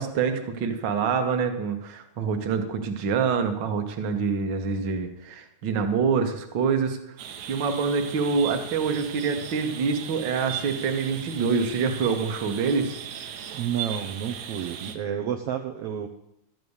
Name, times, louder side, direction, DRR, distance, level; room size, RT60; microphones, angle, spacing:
voice 1, 0.0-7.0 7.5-12.9, right 5 dB, 50° right, 6 dB, 1.5 m, -26 dB
sound 1, 7.2-15.0, right 9 dB, 90° right, 2.5 m, -38 dB
voice 2, 13.5-16.1, right 9 dB, 70° right, 5 dB, 1.5 m, -30 dB
12.5 x 7.2 x 8.0 m, 0.79 s
omnidirectional pair, 3.3 m